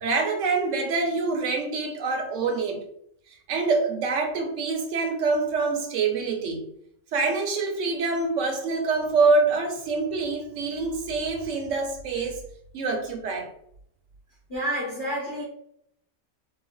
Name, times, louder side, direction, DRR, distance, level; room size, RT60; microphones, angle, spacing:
voice 1, 0.0-2.8 3.5-6.6 7.1-12.4 12.7-13.5, right 4 dB, 70° right, 2 dB, 0.9 m, -25 dB
voice 2, 14.5-15.4, equal, 30° left, -7 dB, 0.8 m, -29 dB
3.1 x 2.2 x 2.2 m, 0.70 s
omnidirectional pair, 1.4 m